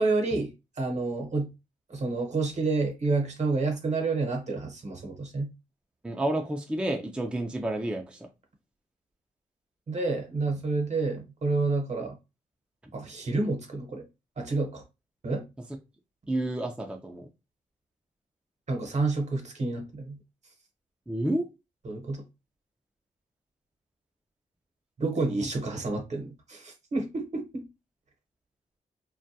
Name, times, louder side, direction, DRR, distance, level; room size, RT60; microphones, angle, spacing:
voice 1, 0.0-1.5 1.9-5.5 9.9-12.2 12.9-14.0 14.4-14.8 15.2-15.4 18.7-20.2 21.8-22.2 25.0-27.6, right 3 dB, 50° right, 0.9 m, -29 dB
voice 2, 6.0-8.3 16.3-17.3 21.1-21.5, right 1 dB, 5° right, 0.4 m, -30 dB
2.2 x 2.1 x 2.7 m
cardioid pair, 60°, 14 cm